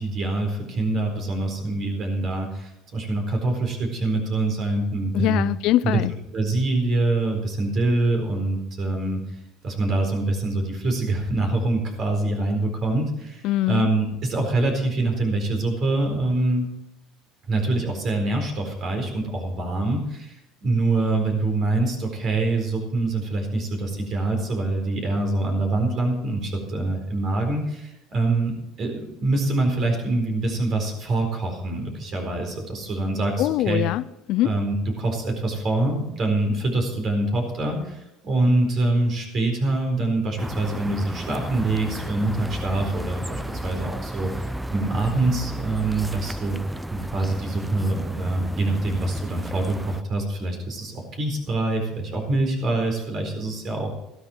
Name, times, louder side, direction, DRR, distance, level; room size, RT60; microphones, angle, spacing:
voice 1, 0.0-5.4 5.8-6.0 6.3-9.2 9.6-16.7 17.5-20.4 20.6-33.8 34.4-46.6 46.9-53.9, right 2 dB, 40° right, 4.3 m, -25 dB
voice 2, 5.1-6.1 13.4-13.9 33.4-34.5, left 15 dB, 60° left, 0.4 m, -23 dB
sound 1, 40.4-50.0, right 1 dB, 5° right, 0.5 m, -33 dB
14.5 x 12.5 x 4.4 m
cardioid pair, 125°, 0 cm